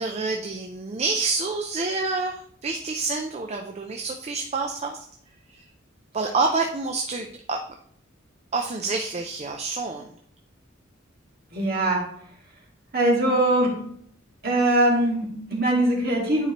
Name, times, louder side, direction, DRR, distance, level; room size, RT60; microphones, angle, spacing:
voice 1, 0.0-5.1 5.5-5.6 6.1-7.6 8.5-10.1, right 3 dB, 30° right, 3 dB, 0.5 m, -28 dB
voice 2, 11.5-12.0 12.9-13.7 14.4-16.5, right 1 dB, 50° right, -2 dB, 2.0 m, -21 dB
9.2 x 4.7 x 3.0 m, 0.65 s
head